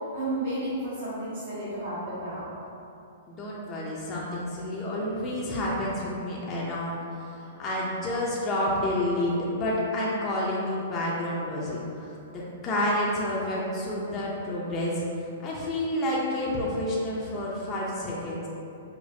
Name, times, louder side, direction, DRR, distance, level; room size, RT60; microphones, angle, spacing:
voice 1, 0.1-2.5, right 1 dB, 60° right, -13 dB, 1.2 m, -32 dB
voice 2, 3.3-7.0 7.4-15.0 15.4-18.5, left 1 dB, 25° left, -6 dB, 0.5 m, -29 dB
4.9 x 2.1 x 2.6 m, 2.8 s
hypercardioid pair, 145°, 0 cm